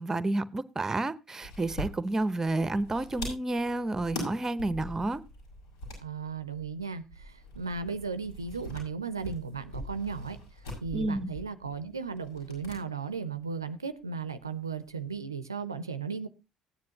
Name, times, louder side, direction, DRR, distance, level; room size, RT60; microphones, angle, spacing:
voice 1, 0.0-5.2 10.9-11.3, right 2 dB, 25° right, 0.8 m, -30 dB
sound 1, 1.4-12.8 13.1-13.2 14.4-15.1, left 1 dB, 80° left, 5.8 m, -43 dB
voice 2, 6.0-10.4 10.8-16.3, right 5 dB, 90° right, 0.5 m, -36 dB
16.0 x 9.6 x 2.8 m
figure-of-eight pair, 50°, 2 cm